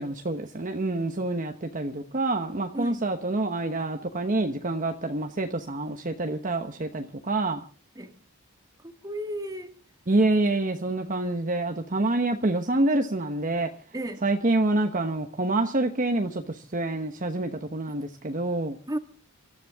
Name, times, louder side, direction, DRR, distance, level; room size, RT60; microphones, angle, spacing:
voice 1, 0.0-7.6 10.1-13.7 14.2-18.8, right 2 dB, 40° right, 1.1 m, -27 dB
voice 2, 8.8-9.8 13.9-14.2 18.9-19.0, right 1 dB, 15° right, 1.7 m, -33 dB
26.5 x 13.5 x 3.6 m
head